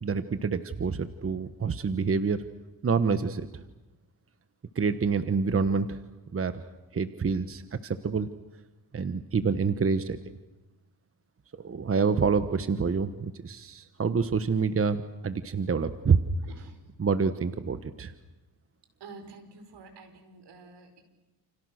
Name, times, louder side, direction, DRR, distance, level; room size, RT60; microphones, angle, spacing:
voice 1, 0.0-2.4 2.8-3.6 4.7-6.0 6.3-6.6 6.9-8.3 8.9-10.3 11.6-16.2 17.0-18.1, right 5 dB, 30° right, 11 dB, 1.2 m, -27 dB
voice 2, 16.4-16.8 19.0-21.0, right 4 dB, 75° right, 7 dB, 5.6 m, -48 dB
30.0 x 29.0 x 6.5 m, 1.1 s
cardioid pair, 100°, 42 cm